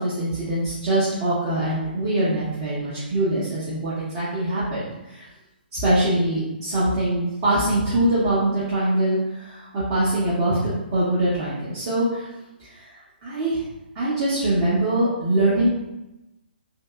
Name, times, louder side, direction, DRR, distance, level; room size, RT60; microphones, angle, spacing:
voice 1, 0.0-5.2 5.7-10.6 10.9-12.3 13.2-13.6 14.0-15.7, right 1 dB, 30° right, -10 dB, 0.8 m, -23 dB
2.8 x 2.8 x 2.3 m, 0.98 s
figure-of-eight pair, 130°, 6 cm